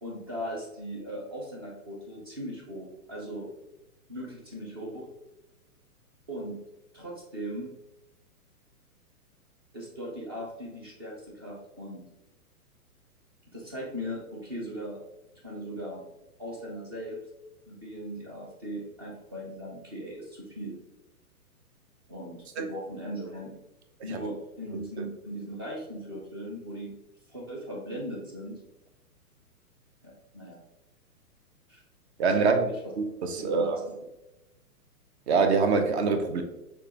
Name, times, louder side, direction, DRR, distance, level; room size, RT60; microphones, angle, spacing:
voice 1, 0.0-3.5 4.1-5.1 6.3-6.6 6.9-7.7 9.7-12.0 13.5-15.0 15.4-16.0 16.4-17.2 17.7-20.8 22.1-23.6 24.0-26.9 27.3-28.6 30.0-30.6 31.7-31.8 32.3-32.8 33.3-33.9, equal, 20° right, -2 dB, 0.4 m, -38 dB
voice 2, 32.2-32.6 33.0-33.8 35.3-36.4, right 4 dB, 45° right, 6 dB, 0.7 m, -24 dB
6.4 x 2.3 x 2.8 m, 0.95 s
hypercardioid pair, 140°, 46 cm